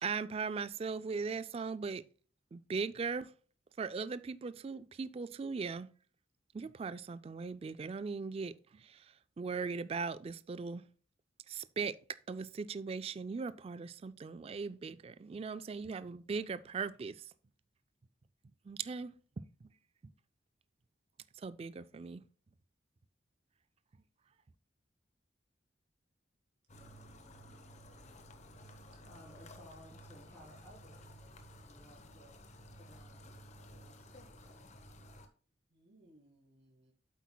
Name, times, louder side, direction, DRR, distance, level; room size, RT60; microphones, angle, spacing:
voice 1, 0.0-2.0 2.5-3.3 3.8-5.9 6.5-10.8 11.5-17.3 18.7-19.7 21.4-22.2, right 5 dB, 30° right, 0.3 m, -39 dB
sound 1, 26.7-35.3, equal, 40° left, 0.9 m, -54 dB
voice 2, 26.8-27.6 28.9-29.0 35.7-36.9, right 1 dB, 65° right, 2.2 m, -66 dB
voice 3, 29.0-31.2 31.6-32.4 32.7-34.8, equal, 15° left, 3.3 m, -59 dB
8.3 x 8.0 x 2.2 m
head